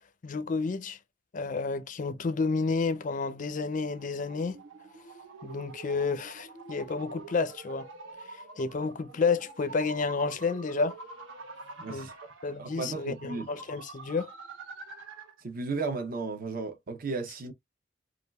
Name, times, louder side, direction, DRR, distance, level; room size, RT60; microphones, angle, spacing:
voice 1, 0.2-1.0 1.3-4.6 5.4-7.9 8.3-11.0 11.9-12.1 12.4-14.3, left 4 dB, 40° left, 0.4 m, -30 dB
sound 1, 2.9-15.4, right 3 dB, 80° right, 0.9 m, -47 dB
voice 2, 11.8-12.1 12.6-13.5 15.4-17.5, right 4 dB, 45° right, 0.6 m, -34 dB
3.4 x 2.3 x 2.2 m
head